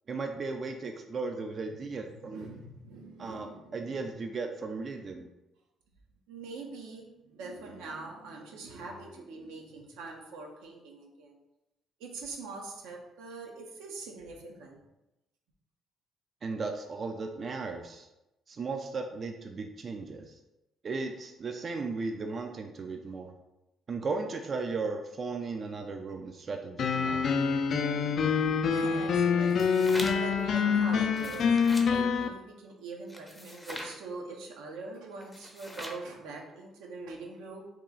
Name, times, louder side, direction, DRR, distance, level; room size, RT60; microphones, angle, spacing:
voice 1, 0.1-2.5 3.2-5.3 16.4-18.1 18.5-20.3 20.8-23.3 23.9-27.2, right 4 dB, 45° right, 4 dB, 0.3 m, -36 dB
voice 2, 1.7-4.0 6.3-11.4 12.0-14.8 28.7-37.7, right 3 dB, 90° right, 0 dB, 0.6 m, -43 dB
sound 1, 26.8-32.3, left 6 dB, 60° left, 0.3 m, -26 dB
sound 2, 29.4-30.4 31.0-31.9 33.1-34.0 35.2-36.1, left 1 dB, 10° left, 0.6 m, -42 dB
2.9 x 2.3 x 3.8 m, 0.95 s
supercardioid pair, 75°, 0 cm